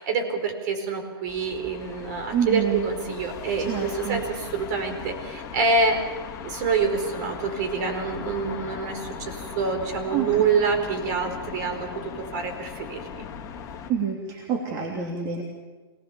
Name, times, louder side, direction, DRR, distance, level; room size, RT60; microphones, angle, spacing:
voice 1, 0.0-6.0 6.4-13.3, right 4 dB, 45° right, 6 dB, 4.6 m, -26 dB
sound 1, 1.2-13.9, left 7 dB, 25° left, 2.2 m, -38 dB
voice 2, 2.3-2.8 3.6-4.2 10.1-10.3 11.3-11.4 13.9-15.4, right 7 dB, 30° right, 0 dB, 2.9 m, -27 dB
26.5 x 19.5 x 7.1 m, 1.3 s
hypercardioid pair, 145°, 13 cm